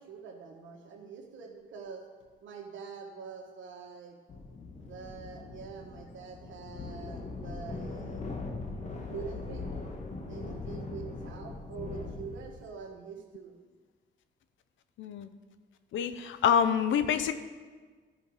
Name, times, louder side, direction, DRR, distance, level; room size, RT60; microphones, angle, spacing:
voice 1, 0.0-2.1 2.4-4.2 4.8-8.2 9.1-9.7 10.3-13.5, right 6 dB, 75° right, 1 dB, 1.6 m, -45 dB
sound 1, 4.3-12.6, left 3 dB, 35° left, 1.3 m, -40 dB
voice 2, 15.0-15.3 15.9-17.3, left 8 dB, 75° left, 11 dB, 0.7 m, -26 dB
12.5 x 5.3 x 4.8 m, 1.4 s
cardioid pair, 90°, 20 cm